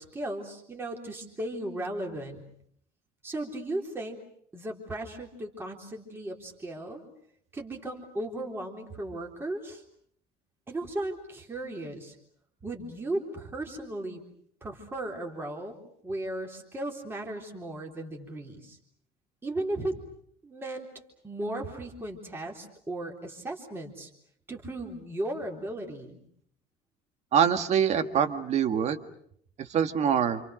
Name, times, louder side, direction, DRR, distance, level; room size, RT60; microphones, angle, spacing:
voice 1, 0.0-2.4 3.2-4.2 4.5-7.0 7.5-9.8 10.7-12.2 12.6-14.2 14.6-15.7 16.0-18.8 19.4-19.9 20.4-20.9 21.2-24.1 24.5-26.2, right 1 dB, 10° right, 0 dB, 3.7 m, -36 dB
voice 2, 27.3-29.0 29.6-30.4, right 8 dB, 35° right, 9 dB, 1.8 m, -24 dB
29.0 x 28.0 x 6.5 m, 0.67 s
cardioid pair, 170°, 19 cm